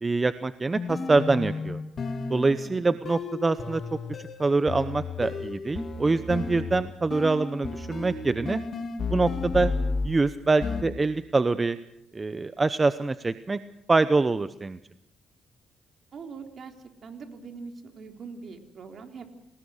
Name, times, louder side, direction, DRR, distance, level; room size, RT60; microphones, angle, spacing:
voice 1, 0.0-1.8 2.3-3.8 4.4-8.6 9.1-9.7 10.0-11.8 12.1-13.6 13.9-14.8, right 3 dB, 25° right, 12 dB, 0.8 m, -25 dB
sound 1, 0.7-10.2 10.6-10.8, left 4 dB, 50° left, 2.6 m, -33 dB
voice 2, 16.1-16.7 17.0-19.2, right 5 dB, 55° right, 4 dB, 3.7 m, -42 dB
28.5 x 19.0 x 6.5 m, 0.79 s
cardioid pair, 90°, 0 cm